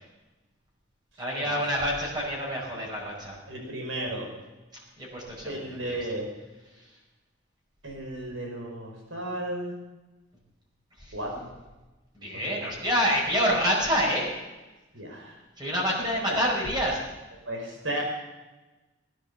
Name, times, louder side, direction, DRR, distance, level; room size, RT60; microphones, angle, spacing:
voice 1, 1.2-3.3 5.0-5.6 12.2-14.3 15.6-17.0, equal, 20° right, -3 dB, 5.1 m, -27 dB
voice 2, 3.5-4.3 5.4-6.3 7.8-9.7 11.1-11.5 12.4-12.6 14.9-15.4 16.3-16.4 17.5-18.0, right 1 dB, 85° right, 1 dB, 5.6 m, -34 dB
19.5 x 10.5 x 6.9 m, 1.1 s
head